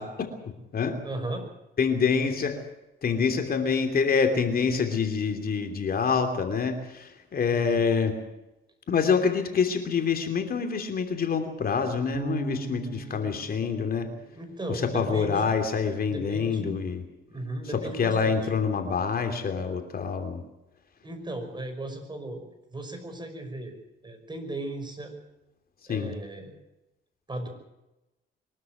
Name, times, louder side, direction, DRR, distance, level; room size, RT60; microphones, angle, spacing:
voice 1, 0.0-1.0 1.8-2.6 3.0-8.1 8.9-14.1 14.8-17.0 17.7-20.4 25.9-26.1, left 5 dB, 50° left, 6 dB, 3.0 m, -26 dB
voice 2, 1.0-1.5 7.5-7.8 13.1-13.2 14.3-15.6 16.1-16.8 17.3-18.5 21.0-22.4 22.7-23.8 24.0-25.2 25.9-26.5 27.3-27.5, right 2 dB, 20° right, 6 dB, 5.7 m, -36 dB
Bass guitar, 12.1-15.2, right 4 dB, 40° right, 6.0 m, -39 dB
23.5 x 13.0 x 9.4 m, 0.95 s
cardioid pair, 90°, 20 cm